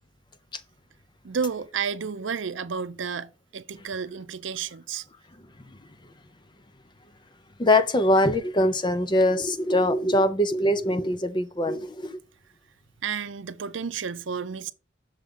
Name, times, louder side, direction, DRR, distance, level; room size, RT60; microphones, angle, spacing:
voice 1, 1.2-5.1 13.0-14.7, right 6 dB, 75° right, 0.5 m, -31 dB
voice 2, 7.6-12.2, left 1 dB, 25° left, 0.6 m, -22 dB
6.6 x 4.7 x 3.7 m
head